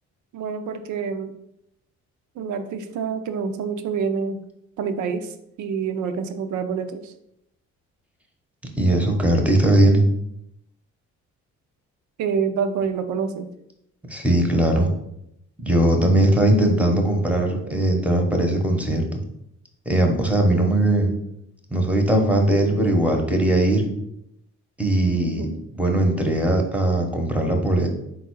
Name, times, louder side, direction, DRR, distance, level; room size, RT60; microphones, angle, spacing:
voice 1, 0.3-1.3 2.4-4.4 4.8-7.1 12.2-13.5 25.2-25.6, right 6 dB, 75° right, 8 dB, 0.6 m, -27 dB
voice 2, 8.7-10.0 14.1-14.9 15.6-19.0 19.9-21.1 21.7-23.9 24.8-25.5 25.7-27.9, right 1 dB, 5° right, 2 dB, 0.8 m, -19 dB
3.8 x 2.3 x 4.5 m, 0.79 s
cardioid pair, 90°, 30 cm